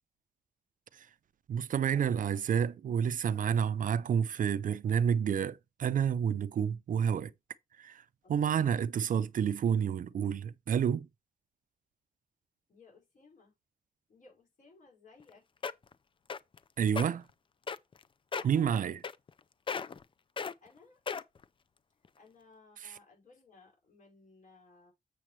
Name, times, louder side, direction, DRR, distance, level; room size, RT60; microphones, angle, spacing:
voice 1, 1.5-7.3 7.8-8.0 8.3-11.1 16.8-17.2 18.4-19.0, right 8 dB, 60° right, 0.5 m, -29 dB
voice 2, 8.2-8.5 12.7-13.5 14.1-15.7 18.4-19.0 20.6-21.0 22.2-24.9, left 4 dB, 55° left, 5.3 m, -59 dB
sound 1, 15.2-15.3 15.6-15.9 16.3-16.6 16.9-17.1 17.7-18.0 18.3-18.6 19.0-19.4 19.7-20.0 20.4-20.5 21.1-21.4 22.0-22.1, left 5 dB, 35° left, 0.4 m, -35 dB
7.5 x 7.3 x 3.1 m
wide cardioid pair, 140°, 15 cm